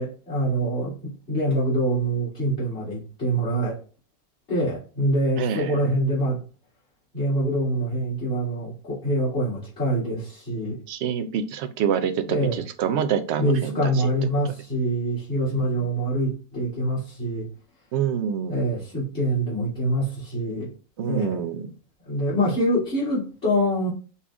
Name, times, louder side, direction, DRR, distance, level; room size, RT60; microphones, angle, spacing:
voice 1, 0.0-3.8 4.5-6.4 7.1-10.8 12.3-12.6 13.4-17.5 18.5-20.7 21.1-21.4 22.1-23.9, right 1 dB, 45° left, 2.7 m, -25 dB
voice 2, 5.4-5.8 10.9-13.9 15.6-15.7 17.9-18.6 21.0-21.7, right 8 dB, 65° right, 0.7 m, -26 dB
5.7 x 2.3 x 3.5 m
omnidirectional pair, 1.5 m